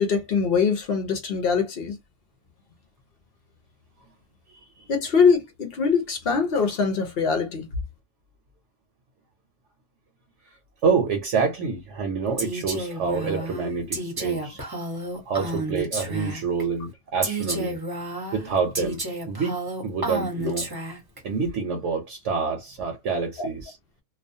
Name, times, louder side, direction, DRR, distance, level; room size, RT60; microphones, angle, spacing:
voice 1, 0.0-2.0 4.9-7.7 23.4-23.5, left 5 dB, 55° left, 0.7 m, -23 dB
voice 2, 4.5-4.9 10.4-10.6 10.8-14.6 15.2-17.8 18.3-19.0 19.3-19.6 19.8-20.7 21.2-23.8, right 5 dB, 60° right, 0.9 m, -27 dB
Female speech woman speaking, 12.4-16.6 17.2-21.2, right 1 dB, 20° right, 0.6 m, -31 dB
2.4 x 2.2 x 2.6 m
omnidirectional pair, 1.5 m